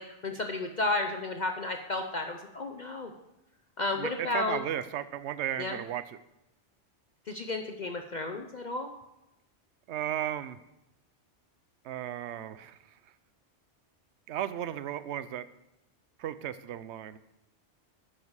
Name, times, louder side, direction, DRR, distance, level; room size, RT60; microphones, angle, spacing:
voice 1, 0.0-3.1 3.8-4.6 5.6-5.8 7.3-8.9, left 2 dB, 45° left, 4 dB, 0.8 m, -32 dB
voice 2, 4.0-6.0 9.9-10.6 11.8-12.8 14.3-15.4 16.2-17.2, right 11 dB, 75° right, 14 dB, 0.9 m, -35 dB
10.5 x 9.8 x 4.8 m, 0.92 s
omnidirectional pair, 1.2 m